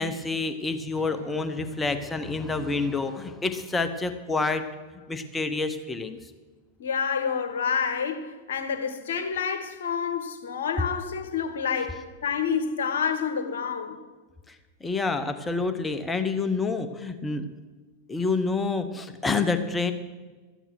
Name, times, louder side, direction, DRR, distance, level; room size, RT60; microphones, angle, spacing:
voice 1, 0.0-4.6 5.1-6.2 14.5-14.6 14.8-17.5 18.1-19.9, left 3 dB, 15° left, 0.9 m, -28 dB
Strum, 0.9-5.6, left 2 dB, 65° right, 2.3 m, -49 dB
voice 2, 6.8-14.0, left 6 dB, 60° left, 1.2 m, -28 dB
13.5 x 9.0 x 6.3 m
figure-of-eight pair, 90°, 0 cm